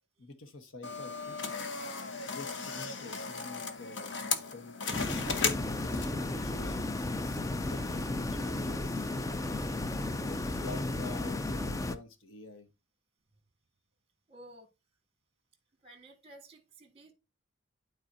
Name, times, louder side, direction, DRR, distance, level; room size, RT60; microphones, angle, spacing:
voice 1, 0.2-1.3 2.3-4.7 5.4-5.9 6.2-9.4 10.2-12.7, left 2 dB, 85° left, 1.2 m, -48 dB
sound 1, 0.8-6.3, left 5 dB, 60° left, 0.9 m, -36 dB
sound 2, 4.9-12.0, left 2 dB, 15° left, 0.4 m, -34 dB
voice 2, 14.3-14.7 15.8-17.1, right 1 dB, 30° right, 1.8 m, -53 dB
11.5 x 4.1 x 2.6 m
head